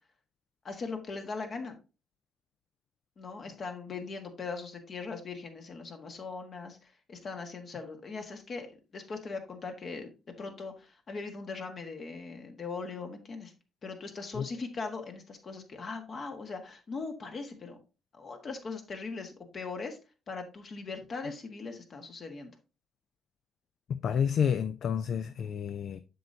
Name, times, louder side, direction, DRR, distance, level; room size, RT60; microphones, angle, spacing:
voice 1, 0.6-1.7 3.2-8.7 8.9-10.1 10.4-13.5 13.8-17.8 18.1-20.0 20.3-22.5, left 4 dB, 50° left, 1.6 m, -40 dB
voice 2, 24.0-26.0, left 7 dB, 65° left, 0.4 m, -29 dB
7.6 x 6.8 x 2.8 m
cardioid pair, 90°, 0 cm